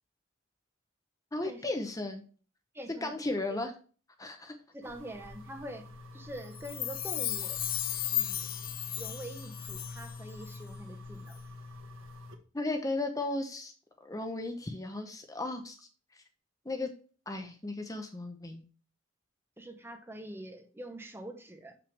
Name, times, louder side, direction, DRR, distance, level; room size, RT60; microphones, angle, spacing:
voice 1, 1.3-2.2 3.0-3.7 4.2-4.5 12.5-13.7 14.0-15.9 16.1-16.2 16.6-16.9 17.3-18.6, left 2 dB, 15° left, 0.8 m, -35 dB
voice 2, 2.7-3.6 4.7-7.6 8.1-8.6 9.0-11.4 19.6-21.8, right 1 dB, 10° right, 0.9 m, -45 dB
sound 1, 4.8-12.4, left 3 dB, 85° right, 1.4 m, -46 dB
Chime, 6.5-10.2 10.5-10.6, left 12 dB, 50° left, 0.9 m, -35 dB
6.8 x 5.9 x 3.3 m
head